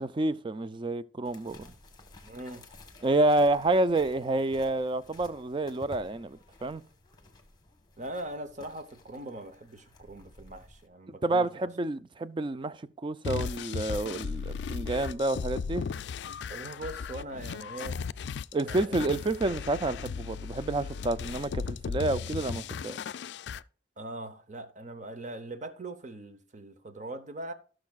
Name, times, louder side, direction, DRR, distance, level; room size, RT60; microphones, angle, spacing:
voice 1, 0.0-1.7 3.0-6.8 11.2-15.8 18.5-23.0, right 2 dB, 25° right, 0.4 m, -29 dB
sound 1, 1.2-10.9, left 2 dB, 25° left, 1.2 m, -53 dB
voice 2, 2.2-2.7 8.0-11.7 16.5-18.0 18.6-19.1 24.0-27.5, right 1 dB, 40° right, 0.9 m, -41 dB
sound 2, 13.2-23.6, left 6 dB, 65° left, 0.3 m, -36 dB
16.5 x 6.3 x 2.4 m
head